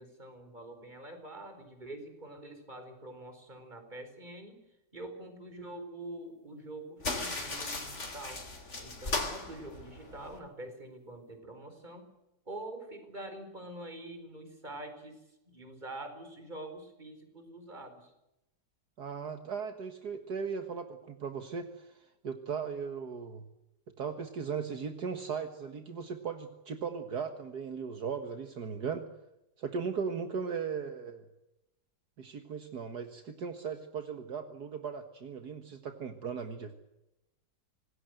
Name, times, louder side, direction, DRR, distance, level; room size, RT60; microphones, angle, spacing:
voice 1, 0.0-4.6 4.9-8.4 8.8-12.1 12.5-15.2 15.5-18.1, right 1 dB, 25° right, 7 dB, 4.9 m, -45 dB
sound 1, 7.0-10.4, left 2 dB, 40° left, 3.7 m, -37 dB
voice 2, 19.0-23.4 24.0-29.1 29.6-31.2 32.2-36.7, right 6 dB, 65° right, 7 dB, 2.1 m, -37 dB
26.5 x 19.5 x 8.0 m, 0.91 s
omnidirectional pair, 1.8 m